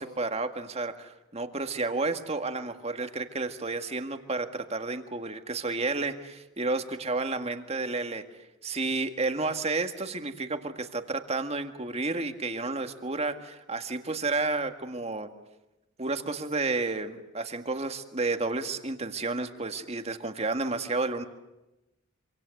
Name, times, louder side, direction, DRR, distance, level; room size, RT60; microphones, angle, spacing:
voice 1, 0.0-8.2 8.6-15.3 16.0-21.2, right 3 dB, 30° right, 7 dB, 1.9 m, -31 dB
26.5 x 26.0 x 7.9 m, 0.97 s
head